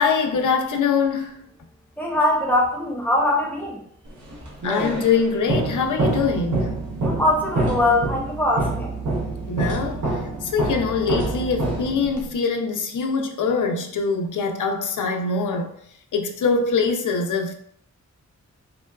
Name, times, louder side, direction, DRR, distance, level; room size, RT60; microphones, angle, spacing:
voice 1, 0.0-1.5 4.6-6.8 9.5-10.0 10.4-15.7 16.1-17.5, left 5 dB, 90° left, 0.5 m, -23 dB
voice 2, 2.0-3.8 7.0-8.9, left 1 dB, 5° left, 0.7 m, -22 dB
sound 1, 4.2-12.3, right 2 dB, 75° right, 0.7 m, -26 dB
3.6 x 2.2 x 2.3 m
wide cardioid pair, 140°, 30 cm